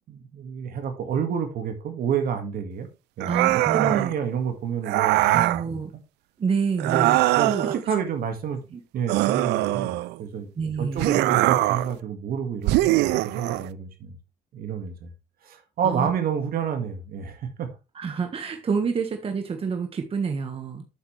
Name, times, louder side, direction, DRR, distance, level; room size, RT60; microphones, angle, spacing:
voice 1, 0.1-2.9 3.2-5.8 6.8-7.1 7.4-8.6 8.9-10.5 10.8-14.2 14.5-15.1 15.4-17.7, right 7 dB, 60° right, 1.9 m, -29 dB
sound 1, 3.2-4.1 4.9-5.6 6.8-7.8 9.1-10.2 11.0-11.9 12.7-13.7, right 17 dB, 85° right, 0.4 m, -22 dB
voice 2, 3.3-4.1 5.3-5.9 6.4-7.7 8.7-8.8 10.6-11.1 15.8-16.1 17.9-20.8, right 5 dB, 35° right, 1.4 m, -28 dB
8.2 x 6.9 x 3.3 m
cardioid pair, 110°, 17 cm